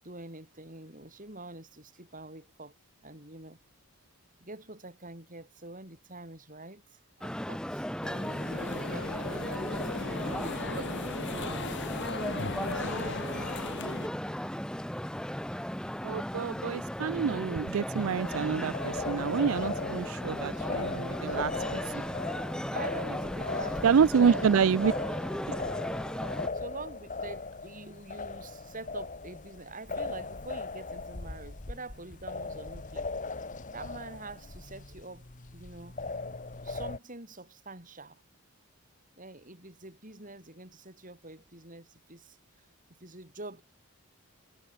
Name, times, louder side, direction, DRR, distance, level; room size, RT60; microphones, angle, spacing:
voice 1, 0.0-2.7 3.0-3.6 4.4-8.2 8.6-11.6 12.4-13.3 22.7-24.4 24.8-25.0 26.5-33.1 33.7-36.0 36.6-38.2 39.2-43.6, right 2 dB, 35° right, 7.8 m, -45 dB
sound 1, 7.2-26.5, equal, 5° left, 1.6 m, -36 dB
sound 2, 8.0-14.1, left 3 dB, 55° left, 1.4 m, -38 dB
voice 2, 16.0-22.0 23.8-24.9 25.5-25.6, right 7 dB, 65° right, 0.4 m, -27 dB
sound 3, 17.9-37.0, left 3 dB, 35° left, 1.2 m, -38 dB
head